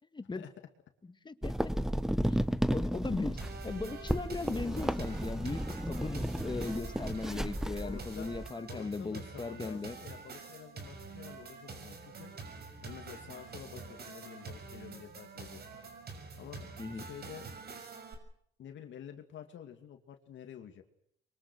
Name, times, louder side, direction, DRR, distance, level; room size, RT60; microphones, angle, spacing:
voice 1, 0.1-0.4 1.0-1.7 2.3-10.0 16.8-17.1, left 3 dB, 25° left, 1.7 m, -38 dB
sound 1, 1.4-8.5, equal, ahead, 1.1 m, -34 dB
sound 2, 3.4-18.1, right 4 dB, 55° right, 6.4 m, -47 dB
voice 2, 7.8-8.4 8.7-12.3 12.8-15.6 16.4-17.5 18.6-20.8, left 9 dB, 70° left, 2.6 m, -49 dB
25.0 x 23.5 x 6.4 m
cardioid pair, 90°, 20 cm